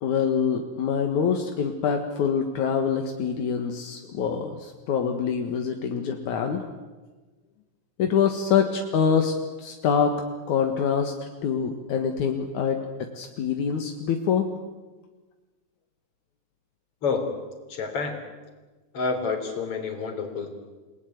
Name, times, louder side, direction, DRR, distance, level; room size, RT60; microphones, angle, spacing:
voice 1, 0.0-6.6 8.0-11.1 11.4-14.5, left 7 dB, 75° left, 4 dB, 3.0 m, -25 dB
voice 2, 17.7-18.2 18.9-20.5, left 4 dB, 50° left, 5 dB, 4.3 m, -28 dB
29.0 x 19.0 x 9.4 m, 1.3 s
omnidirectional pair, 3.5 m